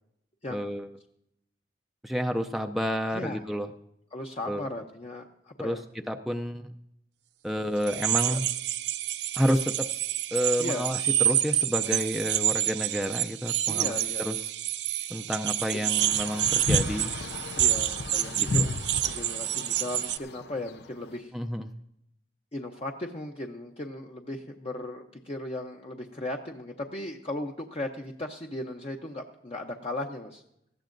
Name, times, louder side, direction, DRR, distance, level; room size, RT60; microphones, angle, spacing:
voice 1, 0.5-0.9 2.0-3.7 4.5-4.7 5.6-5.8 6.1-6.7 7.4-8.4 9.4-9.9 10.3-14.4 15.1-17.1 18.4-18.7 21.3-21.7, equal, ahead, 3 dB, 0.4 m, -30 dB
voice 2, 4.1-5.8 8.3-8.4 10.6-10.9 13.7-14.3 17.6-21.3 22.5-30.4, left 1 dB, 35° left, 2 dB, 0.7 m, -37 dB
sound 1, 7.8-20.2, right 12 dB, 75° right, 0.5 m, -28 dB
sound 2, 16.0-21.1, left 3 dB, 65° left, 0.5 m, -33 dB
19.0 x 15.0 x 2.6 m, 0.80 s
head